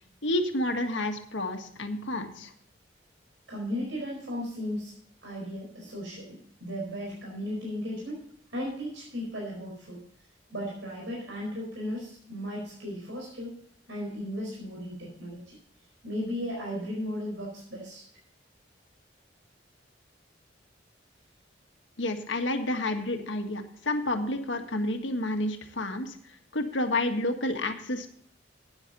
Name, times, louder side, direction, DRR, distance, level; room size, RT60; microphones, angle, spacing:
voice 1, 0.2-2.5 22.0-26.2 26.5-28.1, left 1 dB, 75° left, 5 dB, 1.7 m, -30 dB
voice 2, 3.5-4.9 5.2-8.2 8.5-10.0 10.5-13.6 13.9-15.6 16.0-18.0, equal, 85° right, -3 dB, 4.7 m, -35 dB
13.0 x 9.8 x 4.0 m, 0.63 s
head